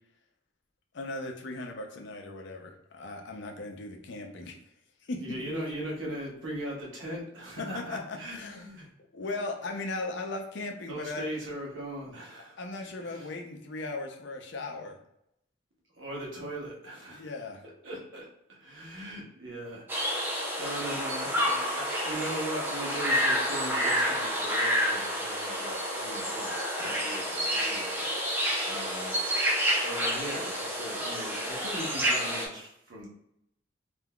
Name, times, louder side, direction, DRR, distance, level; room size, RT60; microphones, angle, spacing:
voice 1, 0.9-4.6 5.1-5.2 7.6-11.3 12.6-15.0 17.1-17.6 20.8-21.0, left 2 dB, 65° left, 3 dB, 0.6 m, -38 dB
voice 2, 5.2-8.9 10.9-12.6 13.1-13.3 16.0-17.3 17.8-19.9 20.5-28.1 28.6-29.2 29.8-33.1, right 1 dB, 80° right, -3 dB, 1.0 m, -39 dB
sound 1, 19.9-32.5, equal, 10° right, 0.6 m, -29 dB
3.6 x 2.6 x 2.3 m, 0.78 s
head